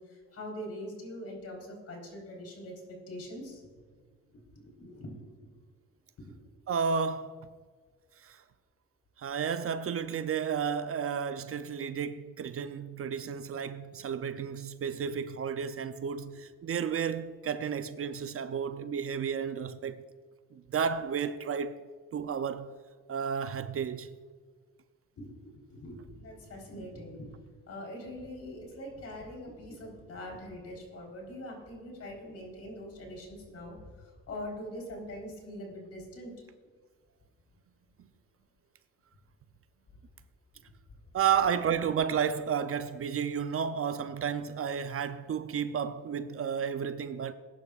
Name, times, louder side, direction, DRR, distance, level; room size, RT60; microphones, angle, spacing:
voice 1, 0.0-2.7 3.1-3.6 4.3-5.5 25.2-27.3 27.7-36.3, left 1 dB, 55° left, 4.0 m, -43 dB
voice 2, 6.7-7.5 8.2-8.4 9.2-20.1 20.5-21.8 22.1-22.7 23.1-24.1 41.1-47.3, right 7 dB, 50° right, 0.6 m, -32 dB
20.0 x 10.5 x 2.4 m
cardioid pair, 90°, 30 cm